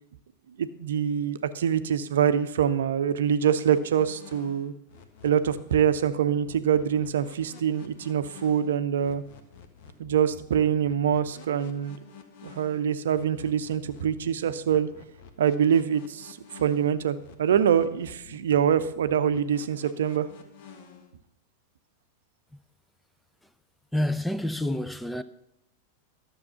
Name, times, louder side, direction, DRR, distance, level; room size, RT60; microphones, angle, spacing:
voice 1, 0.6-4.7 5.2-9.2 10.0-12.0 12.4-14.9 15.4-20.3, right 8 dB, 60° right, 0.7 m, -25 dB
sound 1, 3.4-21.1, left 6 dB, 50° left, 1.3 m, -50 dB
voice 2, 23.9-25.2, left 1 dB, 5° left, 0.5 m, -28 dB
13.0 x 7.1 x 5.7 m
figure-of-eight pair, 90°, 0 cm